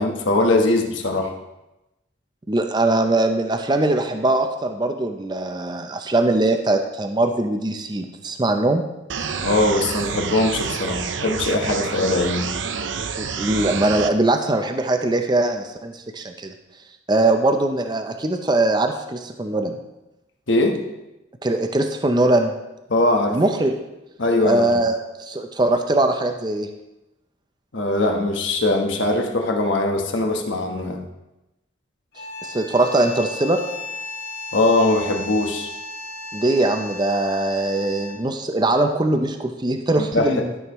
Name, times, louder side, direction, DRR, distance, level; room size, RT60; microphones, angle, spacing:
voice 1, 0.0-1.3 9.4-12.5 20.5-20.8 22.9-23.4 24.2-24.8 27.7-31.0 34.5-35.7 40.0-40.6, left 2 dB, 70° left, 3 dB, 1.1 m, -21 dB
voice 2, 2.5-8.8 13.2-16.5 17.1-19.8 21.4-22.5 23.3-23.7 24.4-26.7 32.4-33.6 36.3-40.6, right 2 dB, 20° right, 6 dB, 0.5 m, -21 dB
sound 1, 9.1-14.1, right 6 dB, 70° right, 0.5 m, -28 dB
sound 2, 32.1-38.3, left 2 dB, 50° left, 2.2 m, -35 dB
12.5 x 6.4 x 3.0 m, 0.97 s
head